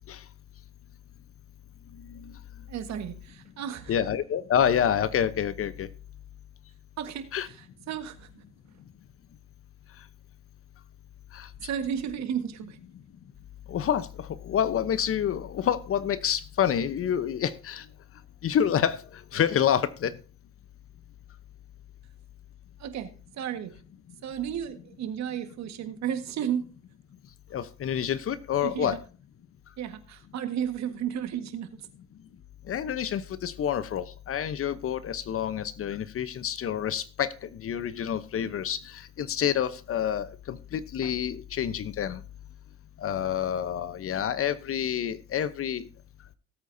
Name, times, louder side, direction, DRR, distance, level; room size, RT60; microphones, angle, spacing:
voice 1, 2.7-3.9 7.0-8.4 11.6-12.8 22.8-23.7 24.2-26.7 28.6-29.0 29.8-31.9, right 9 dB, 55° right, 8 dB, 1.6 m, -33 dB
voice 2, 3.9-5.9 7.3-7.5 11.3-11.5 13.7-17.8 18.4-19.0 19.3-20.1 27.5-29.0 32.7-37.3 37.6-42.2 43.0-45.9, left 9 dB, 45° left, 15 dB, 0.9 m, -28 dB
18.0 x 8.3 x 2.7 m, 0.37 s
supercardioid pair, 80°, 32 cm